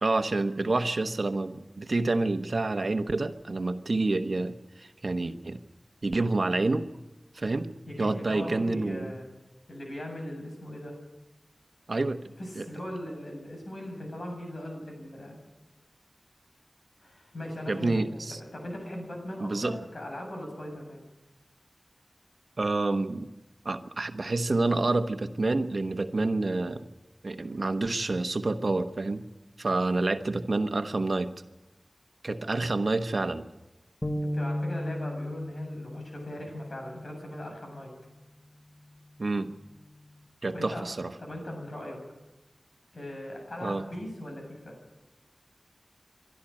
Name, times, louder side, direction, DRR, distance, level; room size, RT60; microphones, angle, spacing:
voice 1, 0.0-5.6 6.0-6.8 7.3-7.7 8.0-9.1 11.9-12.2 12.5-12.6 17.7-18.4 19.4-19.7 22.6-23.3 23.6-26.9 27.2-29.3 29.6-31.3 32.2-33.5 39.2-39.5 40.4-41.1 43.6-43.8, right 2 dB, 70° right, 8 dB, 1.1 m, -28 dB
voice 2, 7.9-9.2 9.7-11.0 12.4-15.3 17.0-18.2 18.5-21.0 32.5-32.7 34.3-37.9 40.5-40.8 41.2-42.0 42.9-44.8, left 1 dB, 80° left, 1 dB, 7.4 m, -39 dB
sound 1, 34.0-37.5, left 1 dB, 10° left, 1.2 m, -35 dB
25.0 x 12.5 x 8.7 m, 1.0 s
wide cardioid pair, 70°, 0 cm